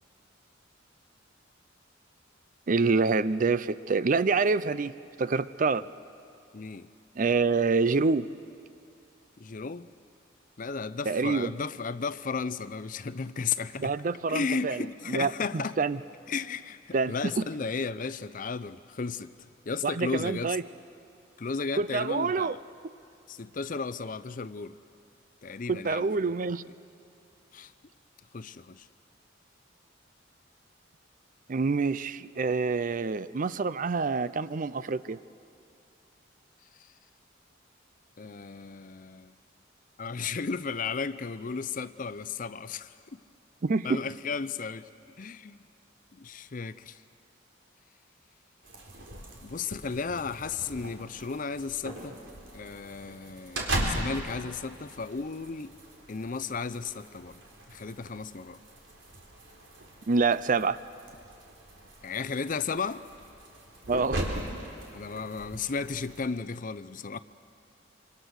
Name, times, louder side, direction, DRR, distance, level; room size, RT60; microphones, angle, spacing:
voice 1, 2.7-5.9 7.2-8.3 11.1-11.5 13.8-16.0 16.9-17.4 19.8-20.6 21.8-22.6 25.7-26.6 31.5-35.2 43.6-44.0 60.1-60.8 63.9-64.4, right 4 dB, 45° right, 0.5 m, -27 dB
voice 2, 6.5-6.9 9.4-9.9 10.6-14.0 14.3-15.7 16.3-20.6 21.4-22.6 23.3-24.8 25.4-26.1 26.4-26.6 27.5-27.7 28.3-28.9 38.2-39.3 40.0-43.2 43.8-44.9 45.2-45.6 46.1-47.0 49.4-52.2 52.5-55.7 56.1-57.4 57.7-58.6 62.0-63.0 64.9-67.2, left 5 dB, 45° left, 0.6 m, -34 dB
sound 1, 48.6-66.3, right 1 dB, 75° right, 3.9 m, -39 dB
26.0 x 25.5 x 6.5 m
head